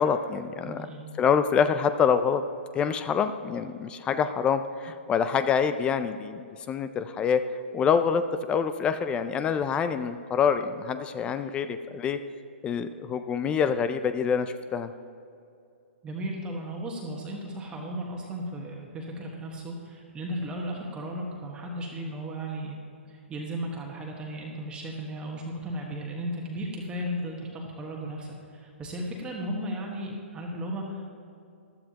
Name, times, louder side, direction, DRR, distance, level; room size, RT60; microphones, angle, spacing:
voice 1, 0.0-0.8 1.2-2.4 2.7-7.4 7.7-8.2 8.5-12.2 12.6-14.9, left 7 dB, 15° left, 11 dB, 0.3 m, -26 dB
voice 2, 0.6-1.0 16.0-22.8 23.1-31.1, equal, 15° right, -1 dB, 1.3 m, -35 dB
15.0 x 11.5 x 2.9 m, 2.5 s
hypercardioid pair, 150°, 7 cm